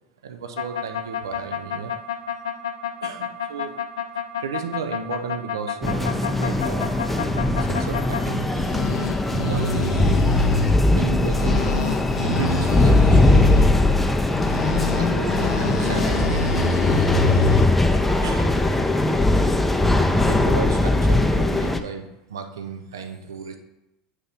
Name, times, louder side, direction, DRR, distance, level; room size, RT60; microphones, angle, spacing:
voice 1, 0.2-1.9 3.0-3.7 4.4-6.8 7.3-8.8 9.3-13.4 15.0-16.8 18.2-18.6 20.1-23.6, right 5 dB, 80° right, 6 dB, 0.6 m, -34 dB
sound 1, 0.6-8.2 8.5-10.8 11.2-13.7 14.3-17.7, left 5 dB, 80° left, 0.5 m, -27 dB
sound 2, 5.8-21.8, left 1 dB, 5° left, 0.6 m, -20 dB
8.1 x 2.9 x 5.5 m, 0.91 s
hypercardioid pair, 80°, 2 cm